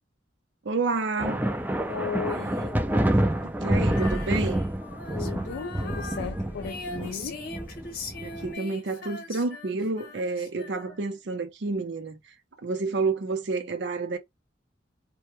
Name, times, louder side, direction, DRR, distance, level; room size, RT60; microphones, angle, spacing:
voice 1, 0.6-1.4 3.6-4.6 8.2-12.2 12.6-14.2, right 3 dB, 70° right, 0.6 m, -29 dB
sound 1, 1.2-8.5, right 1 dB, 10° right, 0.3 m, -28 dB
voice 2, 1.9-2.8 5.1-7.5, left 5 dB, 75° left, 0.4 m, -36 dB
Female singing, 3.8-11.2, left 3 dB, 50° left, 0.7 m, -41 dB
2.2 x 2.1 x 3.0 m
head